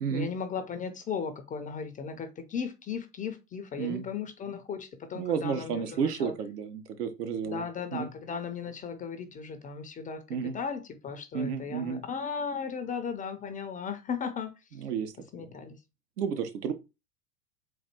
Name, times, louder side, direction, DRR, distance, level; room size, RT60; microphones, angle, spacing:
voice 1, 0.1-6.3 7.5-10.2 10.5-14.5 15.3-15.8, left 6 dB, 20° left, 0.5 m, -36 dB
voice 2, 5.1-7.6 7.9-8.1 10.3-10.6 11.3-12.0 14.7-15.5 16.2-16.7, right 7 dB, 75° right, 1.1 m, -32 dB
4.1 x 2.6 x 4.4 m
hypercardioid pair, 100°, 47 cm